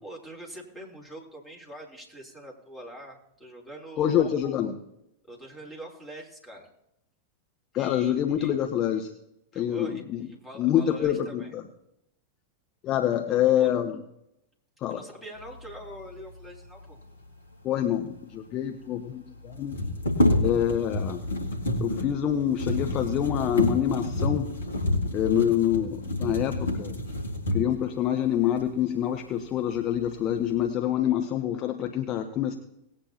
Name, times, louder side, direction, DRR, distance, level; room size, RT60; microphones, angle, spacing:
voice 1, 0.0-4.3 5.3-6.7 7.8-8.5 9.5-11.5 13.2-13.7 14.9-17.0, right 1 dB, 10° left, -2 dB, 3.5 m, -44 dB
voice 2, 4.0-4.8 7.7-9.1 9.5-10.2 10.6-11.6 12.8-13.9 14.8-15.0 17.6-19.8 20.4-21.2 21.8-24.6 25.1-27.0 27.5-32.6, left 10 dB, 35° left, 5 dB, 1.0 m, -26 dB
sound 1, 18.1-18.2 18.3-18.4 19.5-27.9 28.6-28.7 29.1-29.8 30.1-30.7, left 1 dB, 70° left, 2.2 m, -28 dB
19.0 x 8.9 x 2.9 m, 0.80 s
figure-of-eight pair, 90°, 0 cm